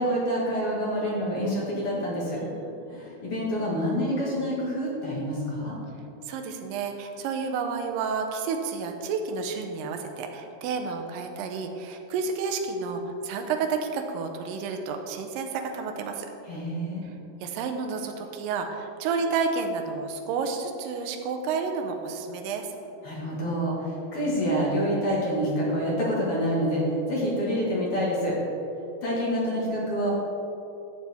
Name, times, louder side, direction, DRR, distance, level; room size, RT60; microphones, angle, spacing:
voice 1, 0.0-2.4 2.9-5.8 16.4-17.0 23.0-28.4 29.0-30.1, equal, 45° left, -5 dB, 2.2 m, -27 dB
voice 2, 2.4-3.0 6.3-16.3 17.4-22.7, right 5 dB, 80° right, 4 dB, 2.3 m, -30 dB
12.0 x 7.5 x 3.5 m, 2.8 s
omnidirectional pair, 4.0 m